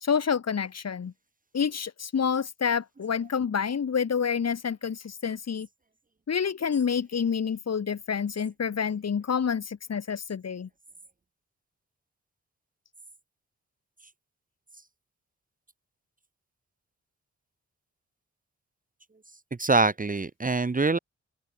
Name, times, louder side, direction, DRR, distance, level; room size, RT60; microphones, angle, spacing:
voice 1, 0.0-1.1 1.5-5.7 6.3-10.7, left 6 dB, 60° left, 2.0 m, -28 dB
voice 2, 19.6-21.0, right 3 dB, 30° right, 1.2 m, -24 dB
open air
supercardioid pair, 45°, 29 cm